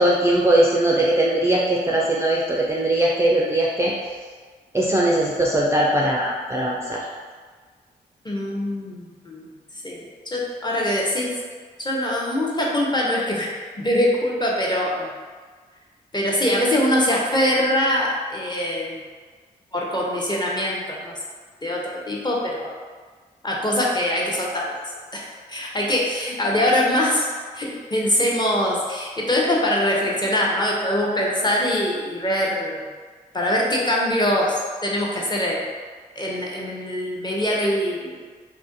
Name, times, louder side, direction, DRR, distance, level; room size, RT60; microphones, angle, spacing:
voice 1, 0.0-3.9 4.7-7.0, right 1 dB, 15° right, -4 dB, 0.4 m, -20 dB
voice 2, 8.2-9.5 9.8-11.3 11.8-13.5 13.8-15.1 16.1-19.0 19.7-21.1 21.6-22.7 23.4-24.7 25.1-27.3 27.5-32.8 33.3-35.6 36.2-38.1, left 1 dB, 20° left, -3 dB, 0.7 m, -23 dB
2.4 x 2.1 x 2.5 m, 1.5 s
supercardioid pair, 40°, 20 cm